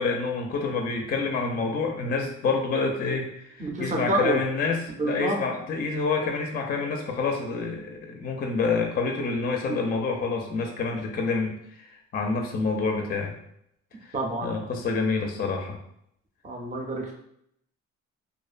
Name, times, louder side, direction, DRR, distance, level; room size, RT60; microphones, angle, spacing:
voice 1, 0.0-11.5 11.8-13.3 14.0-14.1 14.4-15.8, left 4 dB, 30° left, 2 dB, 0.4 m, -27 dB
voice 2, 3.6-4.4 5.0-5.4 14.1-14.5 16.4-17.1, right 2 dB, 25° right, 0 dB, 0.6 m, -28 dB
2.5 x 2.1 x 2.4 m, 0.74 s
cardioid pair, 90°, 30 cm